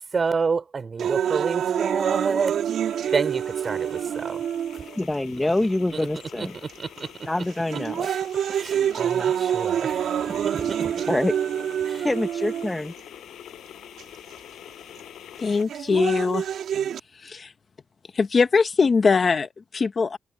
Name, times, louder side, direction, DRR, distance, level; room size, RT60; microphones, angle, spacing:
voice 1, 0.0-2.6 3.1-4.4 4.7-4.8 5.9-7.1 8.0-11.0 11.8-12.1, right 5 dB, 35° right, 5.0 m, -29 dB
sound 1, 1.0-5.0 5.8-5.9 6.7-7.0 7.5-13.0 14.0-14.1 15.5-17.0, right 9 dB, 70° right, 2.8 m, -27 dB
sound 2, 2.7-15.6, left 11 dB, 80° left, 6.3 m, -46 dB
voice 2, 5.0-6.5 7.3-8.1 11.1-11.3 12.0-12.9, left 1 dB, 10° left, 1.0 m, -25 dB
voice 3, 15.4-16.5 17.2-17.5 18.1-20.2, left 5 dB, 35° left, 1.2 m, -21 dB
cardioid pair, 130°, 0 cm